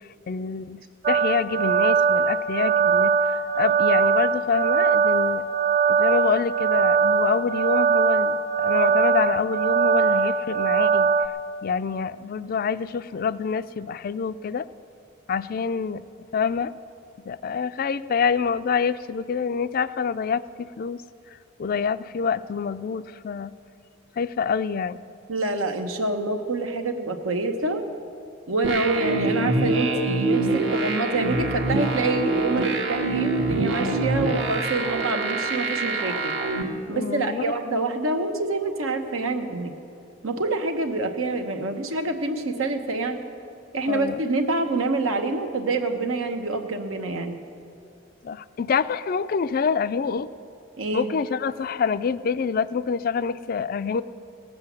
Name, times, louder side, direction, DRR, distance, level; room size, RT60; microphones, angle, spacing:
voice 1, 0.3-5.4 5.9-11.1 11.6-14.7 15.3-16.0 16.3-16.7 17.3-21.0 21.6-23.5 24.2-25.0 33.8-34.0 36.9-37.5 43.9-44.2 48.2-50.3 50.9-54.0, left 6 dB, 45° left, 15 dB, 0.3 m, -26 dB
sound 1, 1.0-11.3, right 6 dB, 40° right, 0.4 m, -21 dB
voice 2, 25.3-27.8 28.5-36.3 36.9-39.7 40.2-43.2 43.7-47.4 50.8-51.1, right 2 dB, 80° right, 5 dB, 1.0 m, -26 dB
sound 2, 28.6-36.6, right 2 dB, 60° right, 1.4 m, -25 dB
18.0 x 7.7 x 7.3 m, 2.5 s
head